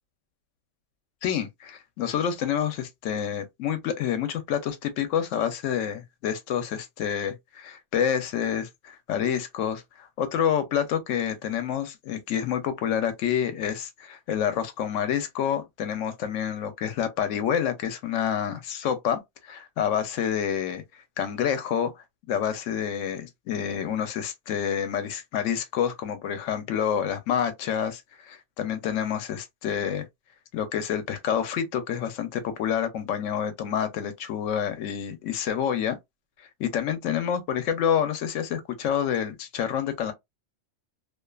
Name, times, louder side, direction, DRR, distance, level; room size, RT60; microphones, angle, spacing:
voice 1, 1.2-20.8 21.2-21.9 22.3-30.1 30.5-36.0 36.6-40.1, left 8 dB, 85° left, 1.0 m, -28 dB
2.4 x 2.3 x 2.3 m
omnidirectional pair, 1.2 m